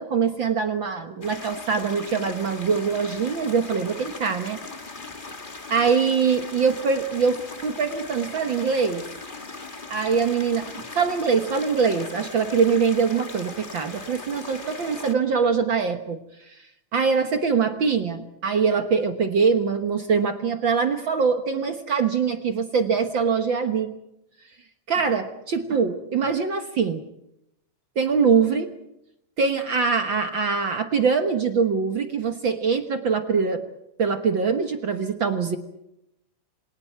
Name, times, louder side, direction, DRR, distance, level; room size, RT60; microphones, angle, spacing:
voice 1, 0.0-4.6 5.7-9.1 9.9-16.2 16.5-16.6 16.9-23.9 24.9-27.1 27.9-28.7 29.4-33.6 34.0-35.6, right 5 dB, 55° right, 7 dB, 1.4 m, -23 dB
sound 1, 1.2-15.1, left 3 dB, 25° left, 1.2 m, -39 dB
28.5 x 26.5 x 4.6 m, 0.82 s
omnidirectional pair, 3.8 m